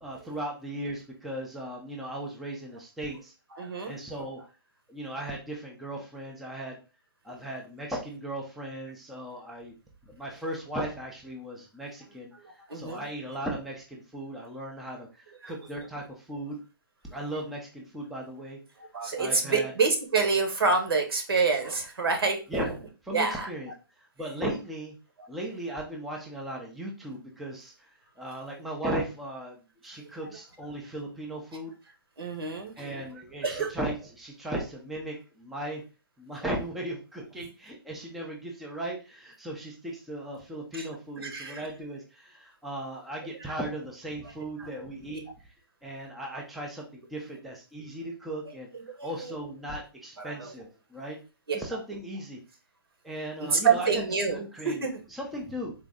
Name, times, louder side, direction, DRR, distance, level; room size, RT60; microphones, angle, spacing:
voice 1, 0.0-3.3 3.9-4.4 4.9-6.8 7.2-9.7 10.1-12.3 12.7-16.6 17.1-18.6 19.2-19.7 22.5-22.7 23.0-23.7 24.2-24.9 25.3-27.9 28.2-29.6 29.8-31.7 32.8-35.8 36.2-45.2 45.8-48.7 49.0-51.2 51.5-52.4 53.0-54.0 54.3-55.7, right 1 dB, ahead, -1 dB, 0.3 m, -37 dB
voice 2, 3.6-4.0 12.4-13.1 15.4-15.5 18.8-22.4 23.1-23.5 32.2-32.7 33.4-33.7 40.7-40.9 41.2-41.7 43.4-43.5 44.6-44.7 48.7-49.3 50.2-50.5 51.5-51.6 53.4-54.4 54.6-54.9, right 4 dB, 90° right, 4 dB, 1.3 m, -27 dB
4.0 x 2.5 x 3.5 m, 0.32 s
hypercardioid pair, 165°, 12 cm